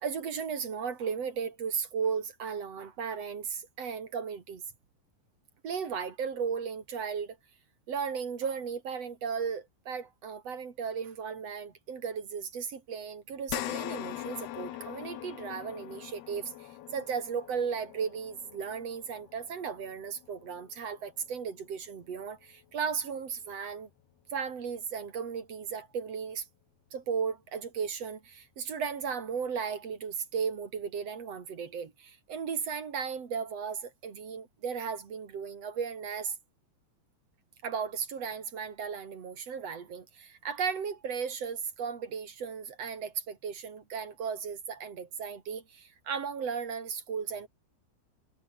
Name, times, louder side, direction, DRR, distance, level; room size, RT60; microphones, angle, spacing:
voice 1, 0.0-4.6 5.6-7.4 7.9-23.9 24.3-26.5 26.9-36.3 37.6-47.5, right 6 dB, 40° right, 2.8 m, -35 dB
sound 1, 13.5-22.1 22.5-22.7 24.1-24.2, left 14 dB, 70° left, 2.8 m, -42 dB
omnidirectional pair, 5.5 m